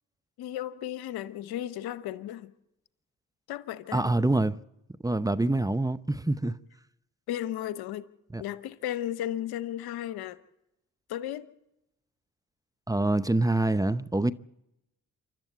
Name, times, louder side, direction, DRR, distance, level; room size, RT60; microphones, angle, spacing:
voice 1, 0.4-2.5 3.5-4.1 7.3-8.0 8.4-10.4 11.1-11.5, left 12 dB, 85° left, 1.0 m, -34 dB
voice 2, 3.9-4.6 5.0-6.6 8.3-8.4 12.9-14.3, right 2 dB, 10° right, 0.8 m, -25 dB
28.0 x 12.0 x 8.2 m
supercardioid pair, 50°, 37 cm